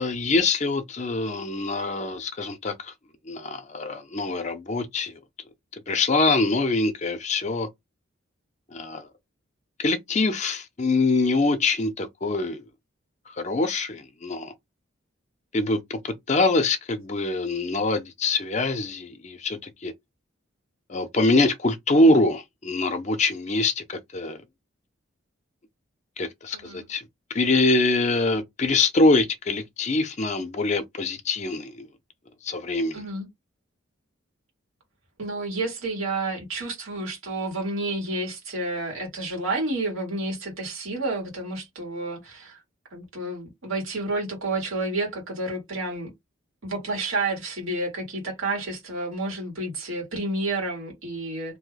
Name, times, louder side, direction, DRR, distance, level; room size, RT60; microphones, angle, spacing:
voice 1, 0.0-2.9 3.3-5.1 5.9-7.7 8.7-9.1 9.8-12.7 13.4-14.5 15.5-19.9 20.9-24.4 26.2-27.0 27.3-31.9 32.4-33.0, left 2 dB, 35° left, 0.5 m, -24 dB
voice 2, 26.5-26.9 32.9-33.3 35.2-42.6 42.9-46.1 46.6-51.6, right 2 dB, 90° right, 1.6 m, -30 dB
2.7 x 2.1 x 3.8 m
head